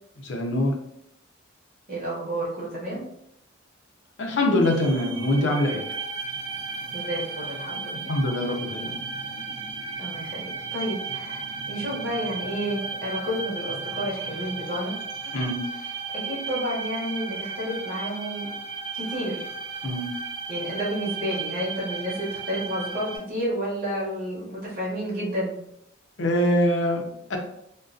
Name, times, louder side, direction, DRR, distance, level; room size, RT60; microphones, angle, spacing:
voice 1, 0.2-0.7 4.2-5.8 8.1-8.9 15.3-15.7 19.8-20.1 26.2-27.4, left 1 dB, 65° left, 2 dB, 0.5 m, -24 dB
voice 2, 1.9-3.0 6.9-8.1 10.0-14.9 15.8-15.9 16.2-18.5 18.9-19.5 20.5-25.5, equal, 45° right, -5 dB, 0.8 m, -31 dB
sound 1, 4.6-23.2, right 4 dB, 70° right, 0.4 m, -35 dB
2.3 x 2.2 x 2.5 m, 0.76 s
head